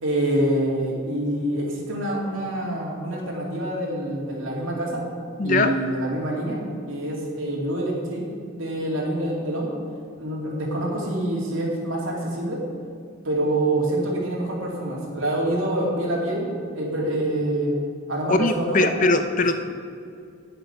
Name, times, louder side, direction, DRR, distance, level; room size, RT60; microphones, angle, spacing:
voice 1, 0.0-5.0 5.4-6.6 6.9-8.2 8.5-9.7 10.2-12.6 13.2-17.8 18.1-18.9, right 1 dB, 75° right, -2 dB, 2.5 m, -26 dB
voice 2, 5.4-5.7 18.3-19.5, left 2 dB, 40° left, 8 dB, 0.6 m, -21 dB
10.5 x 7.8 x 5.9 m, 2.3 s
head